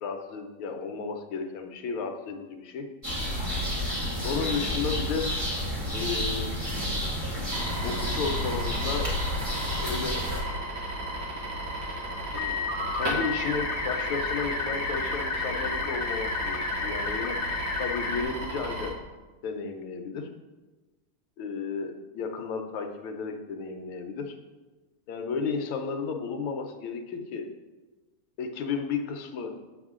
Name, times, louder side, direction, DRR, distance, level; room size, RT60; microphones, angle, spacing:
voice 1, 0.0-2.8 4.2-5.4 5.9-6.5 7.8-9.1 9.7-10.2 12.3-12.6 12.9-17.4 17.8-18.9 19.4-20.3 21.4-24.4 25.1-27.5 28.4-29.5, left 5 dB, 75° left, 5 dB, 1.6 m, -33 dB
sound 1, 3.0-10.4, left 1 dB, 15° right, 1.4 m, -30 dB
sound 2, 7.5-18.9, right 1 dB, 55° right, 1.9 m, -35 dB
sound 3, 12.3-18.2, left 4 dB, 60° left, 1.2 m, -31 dB
6.9 x 6.3 x 3.7 m, 1.2 s
omnidirectional pair, 2.4 m